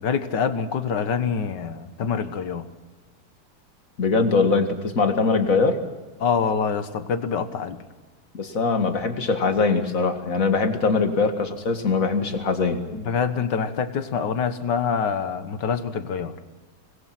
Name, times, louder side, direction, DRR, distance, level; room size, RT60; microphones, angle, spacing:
voice 1, 0.0-2.7 6.2-7.8 12.9-16.4, left 6 dB, 60° left, 11 dB, 1.9 m, -25 dB
voice 2, 4.0-5.8 8.3-12.8, left 4 dB, 40° left, 7 dB, 2.2 m, -22 dB
25.5 x 20.5 x 6.0 m, 1.2 s
omnidirectional pair, 2.3 m